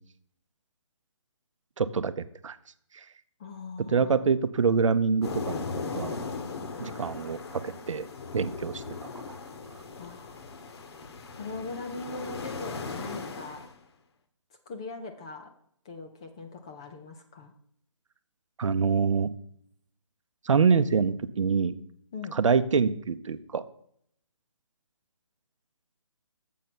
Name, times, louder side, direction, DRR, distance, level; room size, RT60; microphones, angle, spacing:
voice 1, 1.8-2.1 2.4-2.6 2.9-3.0 3.9-6.2 6.8-8.0 8.3-8.8 9.3-9.4 18.6-19.3 20.4-21.7 22.3-23.6, right 5 dB, 75° right, 13 dB, 0.7 m, -25 dB
voice 2, 3.4-4.2 10.0-10.4 11.4-13.7 14.7-15.5 15.9-17.5 22.1-22.4, left 3 dB, 10° left, 5 dB, 0.3 m, -40 dB
sound 1, 5.2-13.7, left 4 dB, 55° left, 1.0 m, -38 dB
7.5 x 5.4 x 5.9 m, 0.67 s
hypercardioid pair, 160°, 16 cm